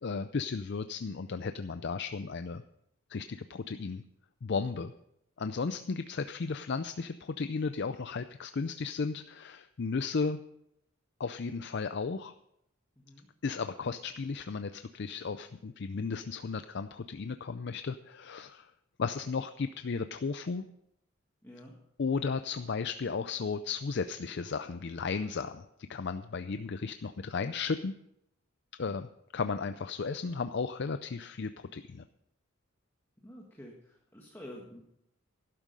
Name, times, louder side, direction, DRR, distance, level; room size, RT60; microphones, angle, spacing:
voice 1, 0.0-2.6 3.1-4.0 4.4-4.9 5.4-10.4 11.2-12.3 13.4-18.7 19.0-20.7 22.0-25.6 25.9-28.0 28.8-32.0, left 4 dB, 55° left, 10 dB, 0.5 m, -34 dB
voice 2, 13.0-13.3 21.4-21.8 33.2-34.8, left 1 dB, 10° left, -1 dB, 1.6 m, -49 dB
12.0 x 11.5 x 5.3 m, 0.78 s
head